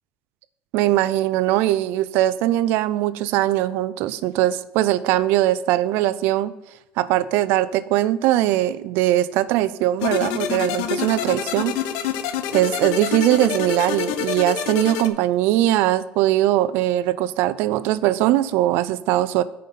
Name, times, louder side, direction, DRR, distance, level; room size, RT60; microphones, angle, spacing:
voice 1, 0.7-6.5 7.0-11.7 12.5-19.4, right 14 dB, 65° right, 15 dB, 0.5 m, -20 dB
sound 1, 10.0-15.1, left 9 dB, 85° left, 0.8 m, -27 dB
9.3 x 5.4 x 5.8 m, 0.95 s
cardioid pair, 165°, 4 cm